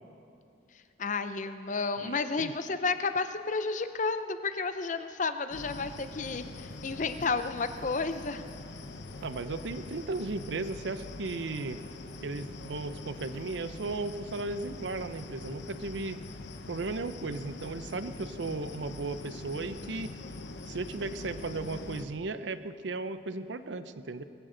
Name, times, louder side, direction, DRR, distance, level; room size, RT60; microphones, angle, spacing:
voice 1, 1.0-8.4, left 4 dB, 45° left, 10 dB, 0.6 m, -32 dB
voice 2, 2.0-2.5 9.2-11.8 12.2-16.2 16.7-20.1 20.6-24.2, right 3 dB, 80° right, 12 dB, 0.6 m, -36 dB
sound 1, 5.5-22.1, left 2 dB, 75° left, 0.9 m, -43 dB
20.5 x 15.5 x 3.9 m, 2.7 s
head